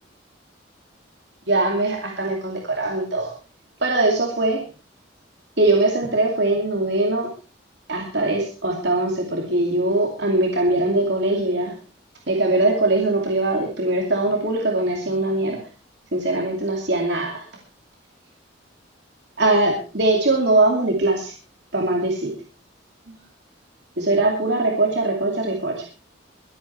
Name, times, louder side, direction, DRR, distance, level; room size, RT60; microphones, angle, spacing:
voice 1, 1.5-3.3 3.8-4.6 5.6-7.3 7.9-11.7 12.3-15.6 16.1-17.4 19.4-21.3 21.7-22.3 23.1-23.2 24.0-25.8, right 2 dB, 60° right, 1 dB, 2.6 m, -21 dB
23.0 x 8.8 x 4.4 m, 0.35 s
head